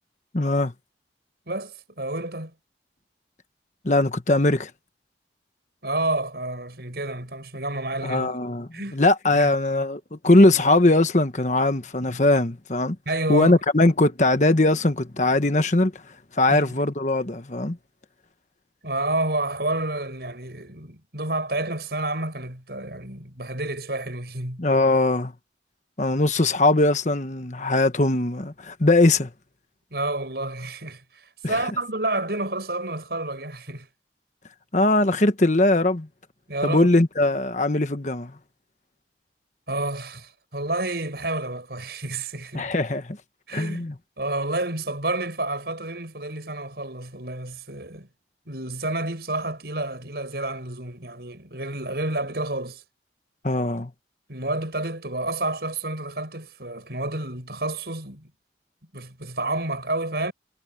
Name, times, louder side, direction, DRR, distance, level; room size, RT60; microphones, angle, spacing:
voice 1, 0.3-0.7 3.8-4.7 8.0-13.0 13.3-15.9 16.4-17.8 24.6-25.3 26.0-29.3 31.4-31.6 34.7-36.1 36.6-38.3 42.5-43.2 43.5-43.9 53.4-53.9, left 2 dB, 40° left, 1.3 m, -20 dB
voice 2, 1.5-2.5 5.8-8.4 8.7-9.0 9.3-9.5 13.1-13.6 16.5-16.8 18.8-24.6 29.9-31.0 31.5-33.9 36.5-36.9 39.7-42.7 43.5-43.9 44.2-48.1 48.5-52.8 54.3-58.3 58.9-60.3, right 2 dB, 65° right, 6.4 m, -29 dB
head